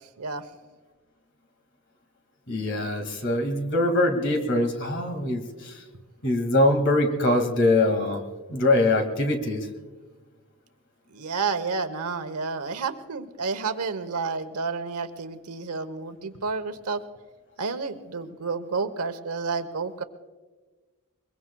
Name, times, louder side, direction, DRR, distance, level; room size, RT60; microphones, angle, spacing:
voice 1, 2.5-5.7 6.2-8.2 8.5-9.7, left 2 dB, 55° left, 5 dB, 2.1 m, -23 dB
voice 2, 11.1-17.0 17.6-20.0, right 4 dB, 90° right, 9 dB, 1.0 m, -30 dB
22.5 x 22.5 x 2.3 m, 1.3 s
head